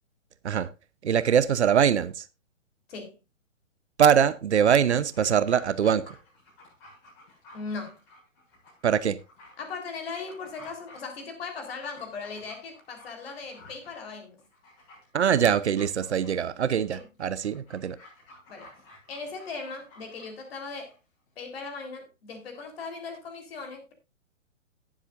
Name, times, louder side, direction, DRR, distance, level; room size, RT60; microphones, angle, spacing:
voice 1, 1.0-2.2 4.0-6.2 8.8-9.2 15.1-18.0, right 8 dB, 55° right, 0.9 m, -23 dB
Dog, 4.8-21.0 21.3-21.4, left 2 dB, 30° left, 7.4 m, -53 dB
voice 2, 7.5-8.0 9.6-14.4 16.9-17.1 18.5-18.7 19.1-21.0 21.4-23.9, left 4 dB, 50° left, 3.9 m, -38 dB
18.0 x 7.7 x 2.6 m
figure-of-eight pair, 125°, 39 cm